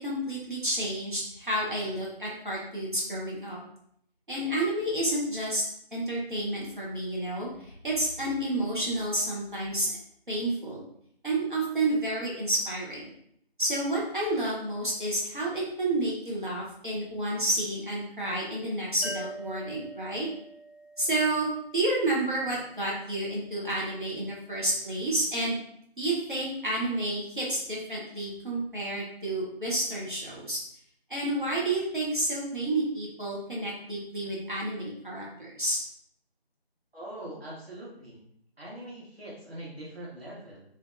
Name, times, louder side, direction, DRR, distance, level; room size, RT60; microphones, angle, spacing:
voice 1, 0.0-3.6 4.3-5.6 5.9-9.9 10.3-10.8 11.2-13.1 13.6-20.3 21.0-25.6 26.0-30.6 31.1-35.8, right 1 dB, 50° right, -5 dB, 0.7 m, -30 dB
sound 1, 19.0-22.5, right 1 dB, 60° left, 0.6 m, -43 dB
voice 2, 36.9-38.2 38.6-40.6, right 1 dB, 70° right, -6 dB, 1.3 m, -42 dB
2.6 x 2.2 x 2.4 m, 0.71 s
figure-of-eight pair, 175°, 31 cm